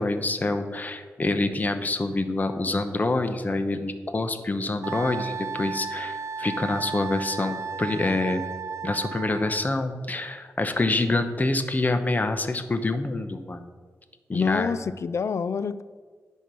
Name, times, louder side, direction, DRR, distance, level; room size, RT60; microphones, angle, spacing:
voice 1, 0.0-8.4 8.8-13.7 14.3-14.7, left 2 dB, 30° left, 9 dB, 0.9 m, -26 dB
Wind instrument woodwind instrument, 4.8-9.7, right 5 dB, 65° right, 0.3 m, -34 dB
voice 2, 14.3-15.8, left 6 dB, 60° left, 15 dB, 0.4 m, -27 dB
10.0 x 4.5 x 6.2 m, 1.5 s
cardioid pair, 65°, 6 cm